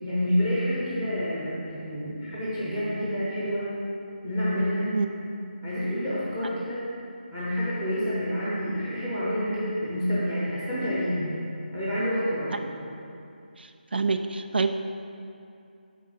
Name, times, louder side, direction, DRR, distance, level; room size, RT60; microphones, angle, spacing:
voice 1, 0.0-3.7 4.2-4.9 5.6-6.9 7.3-11.3 11.7-12.9, equal, 5° right, -10 dB, 0.8 m, -28 dB
voice 2, 13.6-14.7, right 4 dB, 70° right, 7 dB, 0.4 m, -27 dB
6.5 x 4.5 x 5.3 m, 2.6 s
figure-of-eight pair, 175°, 6 cm